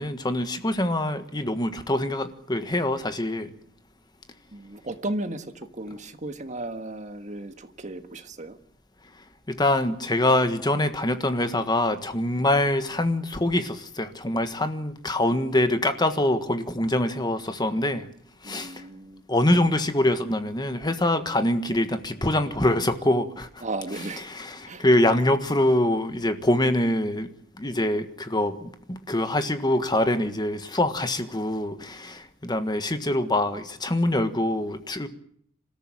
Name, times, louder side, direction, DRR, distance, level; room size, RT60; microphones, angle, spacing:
voice 1, 0.0-3.5 9.5-18.1 18.4-18.8 19.3-23.6 24.3-27.3 27.6-35.1, left 1 dB, 20° left, 9 dB, 1.5 m, -24 dB
voice 2, 4.5-8.6 18.4-19.2 23.6-24.3 24.7-24.8, right 2 dB, 35° right, 8 dB, 1.6 m, -35 dB
27.0 x 13.5 x 8.8 m, 0.67 s
head